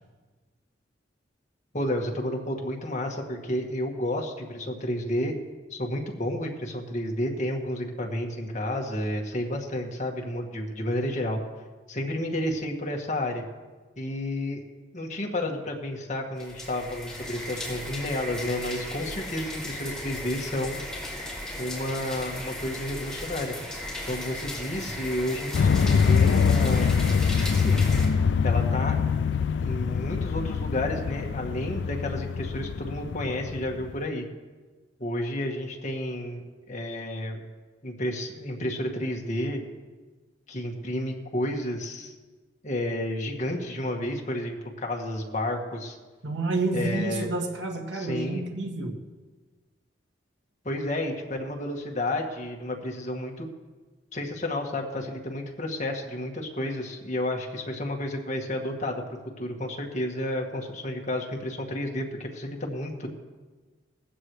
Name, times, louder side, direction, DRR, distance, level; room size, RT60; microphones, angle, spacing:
voice 1, 1.7-5.4 5.7-11.4 11.9-13.4 14.0-14.6 14.9-20.8 21.6-23.5 24.1-26.9 27.6-27.8 28.4-29.0 29.6-34.2 35.0-37.4 37.8-39.6 40.5-42.1 42.6-46.0 46.7-47.3 47.9-48.4 50.6-53.5 54.1-63.1, left 1 dB, 40° left, 1 dB, 1.9 m, -31 dB
sound 1, 16.4-28.1, left 1 dB, 5° left, 4.5 m, -36 dB
sound 2, 25.5-34.0, left 6 dB, 70° left, 0.4 m, -24 dB
voice 2, 46.2-49.0, right 2 dB, 85° right, 2 dB, 2.1 m, -29 dB
19.5 x 15.0 x 3.2 m, 1.3 s
head